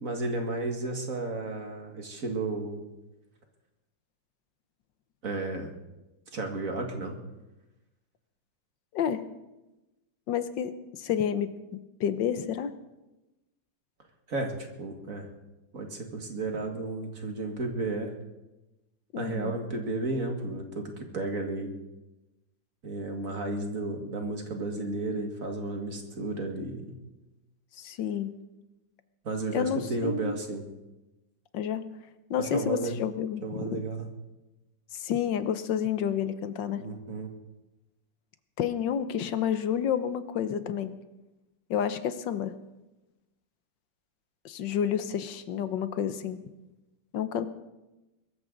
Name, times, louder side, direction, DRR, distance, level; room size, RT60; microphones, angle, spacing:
voice 1, 0.0-2.9 5.2-5.7 6.3-7.2 14.3-15.3 15.7-18.1 19.2-21.7 22.8-26.9 29.2-30.6 32.3-32.9 33.4-34.1 36.8-37.3, right 2 dB, 50° right, 3 dB, 2.2 m, -33 dB
voice 2, 8.9-9.2 10.3-12.7 19.1-19.6 27.8-28.4 29.5-30.4 31.5-31.8 32.3-33.8 34.9-36.8 38.6-40.9 41.7-42.5 44.4-46.4 47.1-47.5, left 8 dB, 80° left, 11 dB, 1.6 m, -30 dB
22.0 x 13.5 x 4.0 m, 1.0 s
omnidirectional pair, 2.0 m